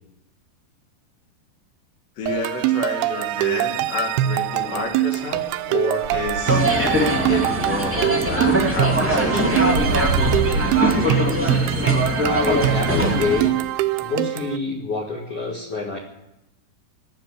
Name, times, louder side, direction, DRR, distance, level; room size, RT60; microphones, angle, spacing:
voice 1, 2.2-6.6 7.3-9.9, left 3 dB, 75° left, 2 dB, 4.4 m, -29 dB
sound 1, 2.3-14.6, right 12 dB, 80° right, 2.4 m, -23 dB
sound 2, 4.3-11.0, right 3 dB, 60° right, 1.4 m, -30 dB
sound 3, 6.4-13.5, equal, 5° right, 1.5 m, -22 dB
voice 2, 12.2-13.5 14.0-16.0, left 3 dB, 50° left, -1 dB, 2.0 m, -26 dB
16.5 x 7.5 x 10.0 m, 0.86 s
omnidirectional pair, 4.9 m